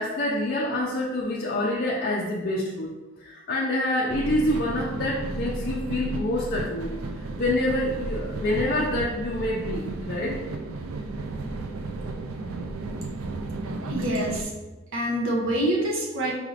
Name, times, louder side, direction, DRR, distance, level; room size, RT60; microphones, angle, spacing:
voice 1, 0.0-2.9 3.2-10.4, left 1 dB, 45° left, -4 dB, 0.5 m, -27 dB
sound 1, 4.1-14.4, right 2 dB, 85° right, 0.4 m, -33 dB
voice 2, 13.9-14.5 14.9-16.3, right 1 dB, 65° right, -2 dB, 0.9 m, -26 dB
4.7 x 2.5 x 3.2 m, 1.2 s
head